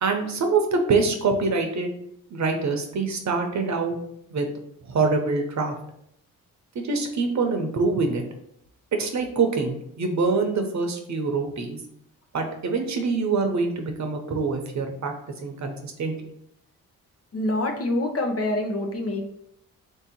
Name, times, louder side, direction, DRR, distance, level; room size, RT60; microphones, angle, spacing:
voice 1, 0.0-1.9 2.3-4.0 4.3-4.5 4.8-5.7 6.7-8.2 8.9-11.8 12.3-15.1 15.4-16.1, right 4 dB, 55° right, 4 dB, 0.9 m, -25 dB
voice 2, 17.3-19.3, left 1 dB, 45° left, 3 dB, 0.8 m, -26 dB
3.2 x 2.8 x 4.4 m, 0.71 s
cardioid pair, 75°, 35 cm